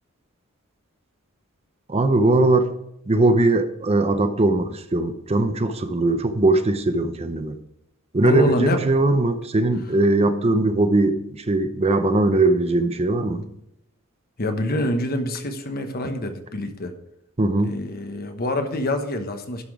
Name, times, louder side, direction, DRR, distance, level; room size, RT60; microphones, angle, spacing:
voice 1, 1.9-2.7 3.1-7.6 8.1-13.5 17.4-17.8, right 2 dB, 30° right, 0.6 m, -20 dB
voice 2, 8.2-8.8 14.4-16.9 17.6-19.6, left 1 dB, 45° left, 1.1 m, -26 dB
11.5 x 5.8 x 4.8 m
head